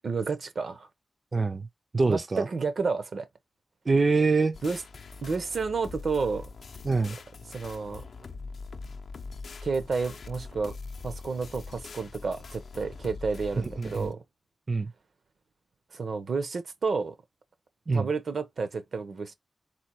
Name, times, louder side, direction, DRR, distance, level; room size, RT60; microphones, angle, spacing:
voice 1, 0.0-0.9 2.1-3.3 4.6-4.8 5.2-6.5 7.5-8.0 9.6-10.7 11.0-14.2 15.9-17.1 17.9-19.3, right 4 dB, 65° right, 0.7 m, -30 dB
voice 2, 1.3-1.7 1.9-2.5 3.9-4.6 6.8-7.2 13.8-14.1 14.7-14.9 17.9-18.1, right 4 dB, 35° right, 0.4 m, -24 dB
sound 1, 4.5-14.1, left 4 dB, 70° left, 0.5 m, -42 dB
4.2 x 2.2 x 4.4 m
wide cardioid pair, 150°, 0 cm